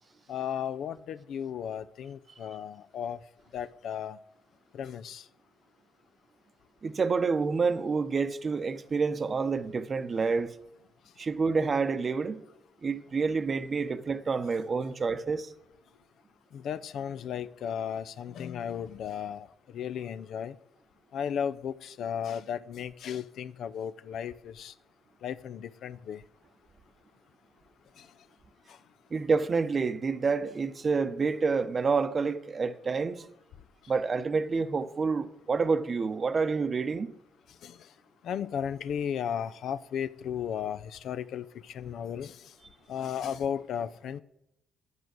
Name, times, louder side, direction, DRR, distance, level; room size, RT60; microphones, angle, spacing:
voice 1, 0.3-3.2 3.5-4.2 4.7-5.2 13.7-13.8 16.5-19.5 19.7-20.5 21.1-24.7 25.2-26.2 28.0-28.1 37.6-37.8 38.2-42.4 42.9-44.2, left 8 dB, 70° left, 0.5 m, -35 dB
voice 2, 6.8-10.5 11.2-12.4 12.8-15.5 29.1-33.3 33.9-37.1, right 4 dB, 40° right, 0.7 m, -28 dB
9.2 x 8.1 x 6.4 m
cardioid pair, 90°, 0 cm